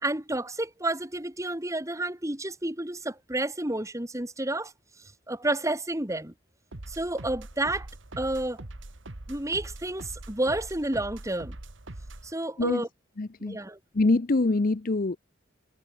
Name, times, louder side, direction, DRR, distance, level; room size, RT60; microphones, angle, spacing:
voice 1, 0.0-4.7 5.3-6.3 6.9-7.9 8.2-8.6 9.3-11.6 12.2-12.9 13.4-13.8, right 1 dB, 15° right, 1.9 m, -30 dB
sound 1, 6.7-12.3, right 1 dB, 70° right, 1.9 m, -43 dB
voice 2, 13.2-13.6 13.9-15.2, left 2 dB, 45° left, 0.6 m, -24 dB
head